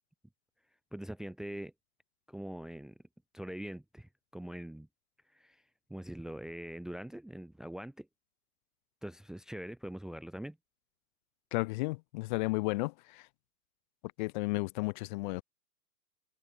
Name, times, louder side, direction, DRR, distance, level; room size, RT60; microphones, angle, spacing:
voice 1, 0.9-1.7 2.3-3.0 3.3-4.9 5.3-5.6 5.9-8.1 9.0-10.6, right 1 dB, ahead, 1.1 m, -43 dB
voice 2, 11.5-13.3 14.2-15.4, left 23 dB, 30° left, 1.5 m, -33 dB
open air
hypercardioid pair, 130°, 46 cm